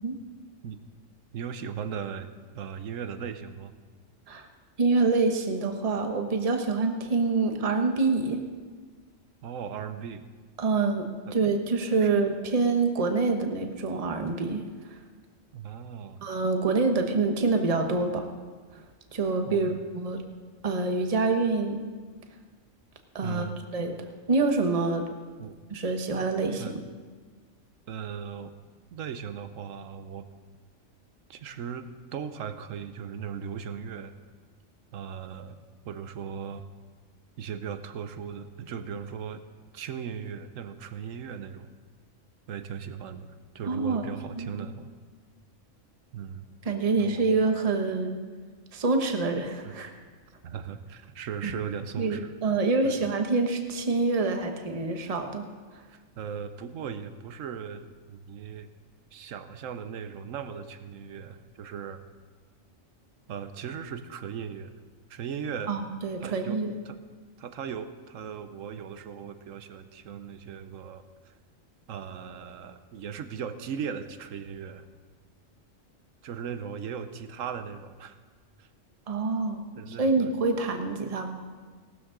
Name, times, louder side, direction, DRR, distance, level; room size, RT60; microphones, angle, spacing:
voice 1, 1.3-2.3 2.5-3.7 9.4-10.2 11.3-11.4 12.0-12.1 15.5-16.3 19.5-19.8 23.2-23.6 25.4-25.6 26.6-26.8 27.9-28.5 28.9-30.3 31.3-34.1 34.9-35.6 35.8-36.7 37.4-39.4 39.7-41.7 42.5-44.9 46.1-46.5 47.0-47.3 49.6-49.8 50.4-52.3 52.8-53.0 55.9-58.7 59.1-62.0 63.3-64.7 65.1-65.7 66.2-67.0 67.4-71.3 71.9-74.9 76.2-78.2 78.6-78.7 79.8-80.6, right 7 dB, 75° right, 10 dB, 1.2 m, -38 dB
voice 2, 4.8-8.5 10.6-14.6 16.2-18.3 19.1-20.2 20.6-21.9 23.1-23.5 23.7-23.9 24.3-25.0 25.7-26.6 43.7-44.0 44.4-44.7 46.6-48.2 48.7-49.9 51.4-51.5 52.0-55.5 65.7-66.7 79.1-81.4, right 3 dB, 30° right, 5 dB, 1.0 m, -26 dB
18.0 x 12.5 x 3.8 m, 1.5 s
omnidirectional pair, 1.4 m